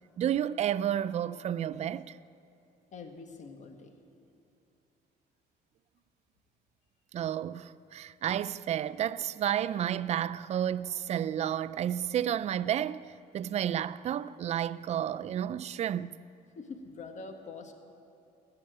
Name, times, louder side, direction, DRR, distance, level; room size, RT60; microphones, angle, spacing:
voice 1, 0.2-2.2 7.1-16.1, right 10 dB, 40° right, 0.4 m, -31 dB
voice 2, 2.9-3.9 16.5-17.7, left 4 dB, 45° left, 1.6 m, -44 dB
16.5 x 6.8 x 9.1 m
cardioid pair, 110°, 17 cm